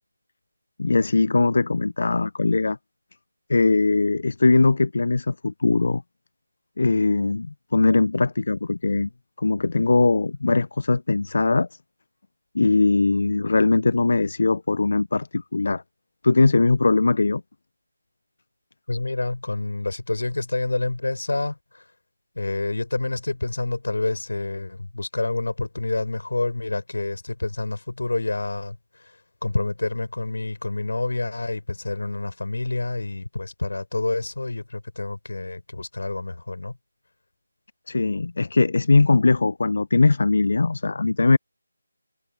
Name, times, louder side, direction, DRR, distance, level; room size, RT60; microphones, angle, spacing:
voice 1, 0.8-2.8 3.5-6.0 6.8-9.1 9.4-11.8 12.5-15.8 16.2-17.4 37.9-41.4, left 3 dB, 60° left, 0.3 m, -20 dB
voice 2, 18.9-21.8 22.3-36.7, left 2 dB, 75° left, 5.9 m, -28 dB
figure-of-eight pair, 165°, 0 cm